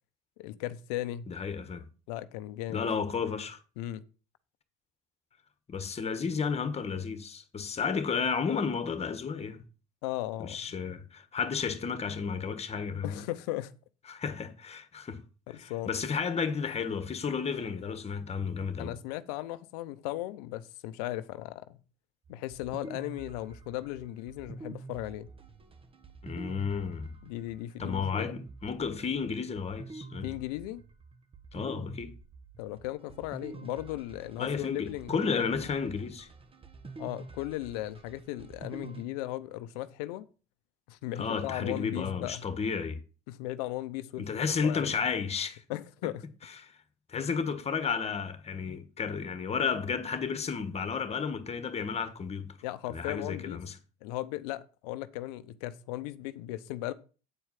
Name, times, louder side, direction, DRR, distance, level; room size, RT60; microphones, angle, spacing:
voice 1, 0.4-1.2 2.1-2.9 3.8-4.0 10.0-10.8 13.0-13.7 15.5-15.9 18.8-21.8 22.3-25.3 27.2-28.4 30.2-30.8 32.6-35.7 37.0-40.3 40.9-42.4 43.3-44.3 44.6-44.9 45.7-46.2 47.2-47.3 52.6-53.6 54.0-56.9, left 15 dB, 85° left, 0.7 m, -37 dB
voice 2, 1.3-1.8 2.7-3.6 5.7-9.6 10.4-13.2 14.1-15.2 15.5-19.0 26.2-27.1 27.8-30.3 31.5-32.1 34.4-36.3 41.2-43.0 44.2-45.6 46.6-46.7 47.1-52.6 52.9-53.7, left 6 dB, 30° left, 1.5 m, -32 dB
sound 1, 22.2-39.0, right 3 dB, 30° right, 1.3 m, -47 dB
8.7 x 4.7 x 5.7 m
supercardioid pair, 80°, 20 cm